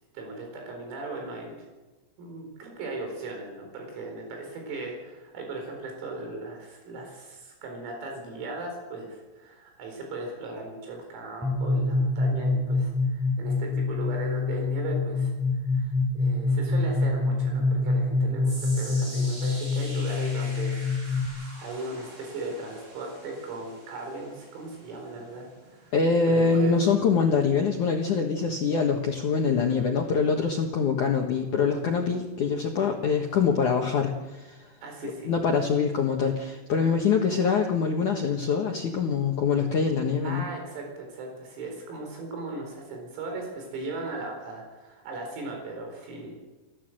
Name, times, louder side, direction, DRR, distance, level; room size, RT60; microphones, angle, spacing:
voice 1, 0.2-1.7 2.2-15.3 15.7-25.9 26.3-26.8 34.8-35.3 40.2-46.5, right 2 dB, 85° right, 2 dB, 7.1 m, -37 dB
sound 1, 11.4-21.3, left 3 dB, ahead, 5.3 m, -26 dB
sound 2, 18.4-30.8 31.1-31.4 32.1-32.2, right 1 dB, 25° right, 4.9 m, -46 dB
voice 2, 25.9-34.7 35.3-40.4, left 5 dB, 70° left, 1 dB, 1.8 m, -24 dB
30.0 x 13.5 x 7.8 m, 1.2 s
omnidirectional pair, 5.9 m